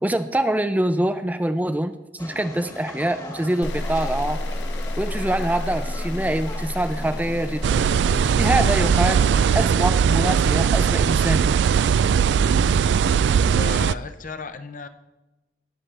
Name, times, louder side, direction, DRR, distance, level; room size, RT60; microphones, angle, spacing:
voice 1, 0.0-1.9 2.2-4.4 5.0-7.8 8.4-9.2 9.5-11.6, right 1 dB, 10° right, 9 dB, 0.5 m, -24 dB
sound 1, 2.2-9.7, left 1 dB, 20° left, 1.5 m, -38 dB
sound 2, 3.6-10.7, left 1 dB, 80° left, 0.8 m, -31 dB
sound 3, 7.6-13.9, right 7 dB, 75° right, 0.3 m, -19 dB
voice 2, 13.5-14.9, left 4 dB, 45° left, 10 dB, 0.7 m, -34 dB
19.0 x 7.5 x 3.3 m, 1.0 s
head